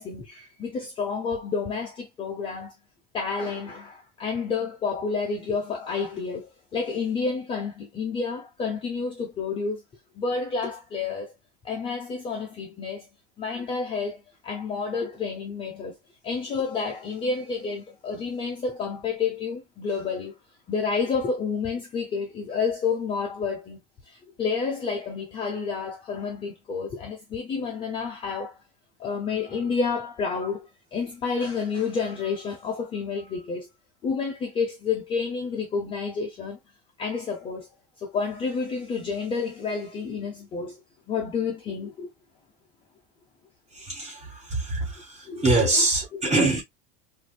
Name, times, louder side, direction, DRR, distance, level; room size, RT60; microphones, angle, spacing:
voice 1, 0.0-2.7 3.1-9.8 10.1-11.3 11.6-13.1 13.4-16.0 16.2-20.3 20.7-28.5 29.0-33.7 34.0-36.6 37.0-37.7 38.0-40.8 41.1-42.1 45.3-45.4 46.1-46.2, left 5 dB, 20° left, 0.5 m, -30 dB
voice 2, 43.8-44.2 44.5-45.0 45.4-46.6, right 2 dB, 25° right, 2.4 m, -23 dB
4.7 x 2.5 x 2.2 m
cardioid pair, 175°, 29 cm